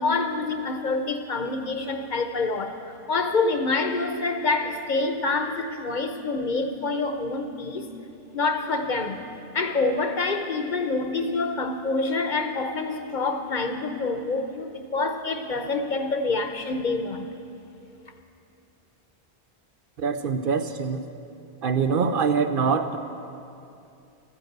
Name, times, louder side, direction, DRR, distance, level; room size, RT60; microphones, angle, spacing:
voice 1, 0.0-7.9 8.3-9.3 9.5-17.3, left 3 dB, 50° left, 7 dB, 0.9 m, -27 dB
voice 2, 20.0-21.0 21.6-23.0, right 5 dB, 60° right, 8 dB, 0.8 m, -24 dB
13.0 x 9.8 x 7.9 m, 2.6 s
omnidirectional pair, 1.1 m